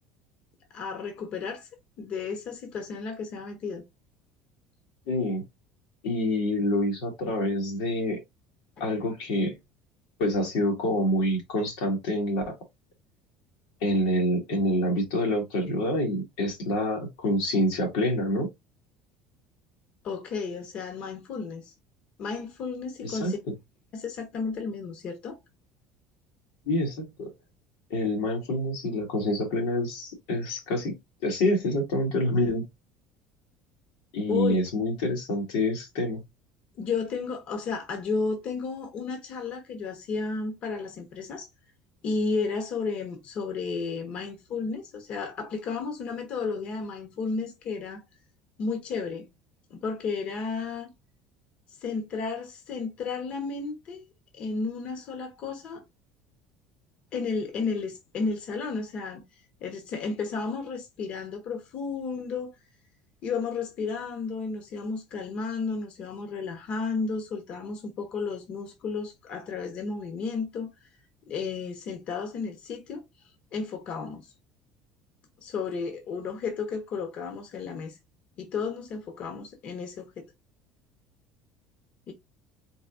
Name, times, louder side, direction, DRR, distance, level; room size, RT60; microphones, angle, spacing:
voice 1, 0.7-1.7 2.0-3.8 20.0-21.7 22.2-23.4 23.9-25.4 34.3-34.6 36.8-41.5 42.0-48.0 48.6-49.3 49.7-50.9 51.8-54.0 54.4-55.8 57.1-59.2 59.6-62.5 63.2-70.7 71.3-73.0 73.5-74.3 75.4-78.0 78.4-80.3 82.1-82.2, left 4 dB, 50° left, 1.1 m, -33 dB
voice 2, 5.1-5.4 6.0-8.2 8.8-9.6 10.2-12.6 13.8-18.5 23.0-23.3 26.7-27.3 27.9-32.6 34.1-36.2, left 1 dB, 85° left, 2.0 m, -27 dB
4.0 x 3.8 x 2.6 m
supercardioid pair, 120°, 2 cm